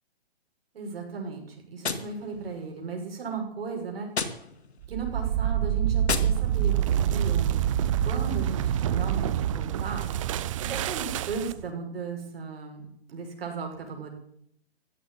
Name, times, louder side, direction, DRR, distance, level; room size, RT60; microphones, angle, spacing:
voice 1, 0.7-4.1 4.9-6.7 7.1-7.6 8.0-10.1 10.6-12.8 13.1-14.1, right 5 dB, 65° right, 2 dB, 6.2 m, -36 dB
Gunshot gunfire, 1.8-2.9 4.1-4.9 6.0-6.9, left 5 dB, 85° left, 2.1 m, -34 dB
sound 1, 4.8-11.7, right 10 dB, 30° right, 0.6 m, -26 dB
15.5 x 8.0 x 9.8 m, 0.72 s
hypercardioid pair, 140°, 32 cm